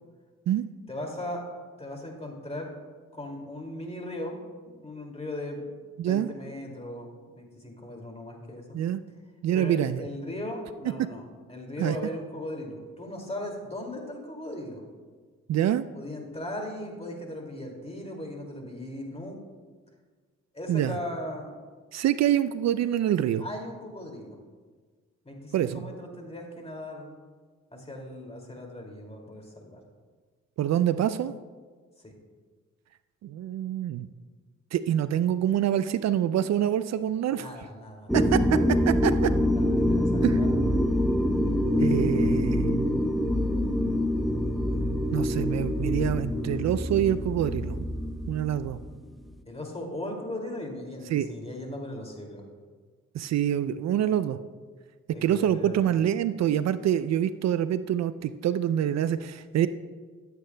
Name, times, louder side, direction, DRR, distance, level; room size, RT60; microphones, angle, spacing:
voice 1, 0.9-1.4 1.8-2.7 3.1-4.4 4.7-5.7 6.1-8.8 9.5-11.2 11.5-14.8 16.0-19.4 20.5-21.6 23.4-24.4 25.2-27.2 27.7-29.8 32.0-32.1 37.3-38.3 39.6-40.6 49.5-52.4 55.1-55.8, left 1 dB, 20° left, 1 dB, 2.3 m, -38 dB
voice 2, 6.0-6.3 8.7-9.0 9.4-10.0 11.8-12.0 15.5-15.9 20.7-21.0 21.9-23.4 25.5-25.8 30.6-31.3 33.2-34.1 34.7-37.5 38.1-38.6 38.9-39.3 40.2-40.4 41.8-43.0 45.1-47.8 48.3-48.8 51.1-51.3 53.1-54.4 55.2-59.7, right 10 dB, 55° right, 14 dB, 0.4 m, -26 dB
sound 1, 38.1-48.9, left 1 dB, ahead, 0.6 m, -25 dB
13.5 x 8.3 x 2.2 m, 1.5 s
supercardioid pair, 55°, 33 cm